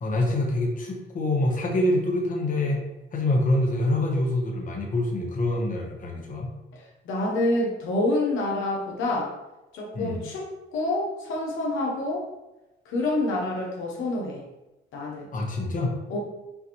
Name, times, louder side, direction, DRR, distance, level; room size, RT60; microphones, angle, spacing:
voice 1, 0.0-2.8 3.1-6.5 9.9-10.3 15.3-15.9, left 1 dB, 40° left, 0 dB, 1.1 m, -25 dB
voice 2, 6.7-9.3 9.7-12.3 12.9-14.4 14.9-15.3 16.1-16.2, left 2 dB, 85° left, -2 dB, 1.0 m, -27 dB
5.7 x 2.6 x 3.0 m, 1.0 s
cardioid pair, 90°, 20 cm